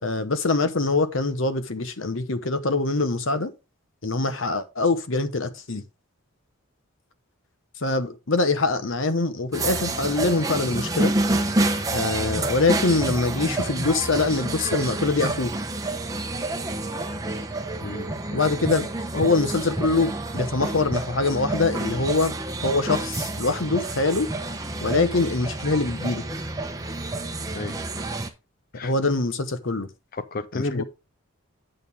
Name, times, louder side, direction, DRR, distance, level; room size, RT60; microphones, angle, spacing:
voice 1, 0.0-3.5 4.0-5.8 7.8-11.1 11.9-15.5 18.3-22.4 22.6-24.3 24.8-26.2 28.8-29.9 30.5-30.8, left 3 dB, 60° left, 1.0 m, -24 dB
sound 1, 9.5-28.3, right 2 dB, 15° right, 0.8 m, -28 dB
voice 2, 30.1-30.8, left 2 dB, 40° left, 0.5 m, -31 dB
9.0 x 6.5 x 3.5 m
head